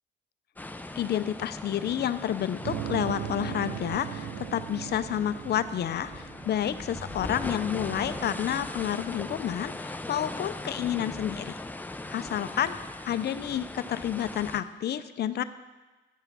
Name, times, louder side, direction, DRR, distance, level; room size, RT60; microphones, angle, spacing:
sound 1, 0.6-14.6, left 2 dB, 10° left, 0.5 m, -40 dB
voice 1, 1.0-11.5 12.1-12.8 13.0-15.4, left 10 dB, 55° left, 13 dB, 0.5 m, -30 dB
sound 2, 2.6-7.5, right 10 dB, 85° right, 0.7 m, -38 dB
sound 3, 6.8-10.6, right 2 dB, 25° right, 0.9 m, -44 dB
10.0 x 5.6 x 6.1 m, 1.2 s
cardioid pair, 90°, 20 cm